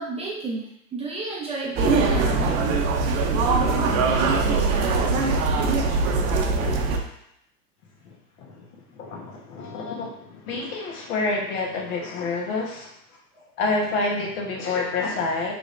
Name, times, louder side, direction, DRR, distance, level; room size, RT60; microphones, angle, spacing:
voice 1, 0.0-2.6 13.3-13.4, right 3 dB, 15° right, -5 dB, 0.6 m, -31 dB
sound 1, 1.8-7.0, right 3 dB, 55° right, 0.7 m, -22 dB
voice 2, 8.0-12.9 13.6-15.5, left 3 dB, 60° left, -1 dB, 1.2 m, -28 dB
3.7 x 3.4 x 2.5 m, 0.77 s
hypercardioid pair, 105°, 49 cm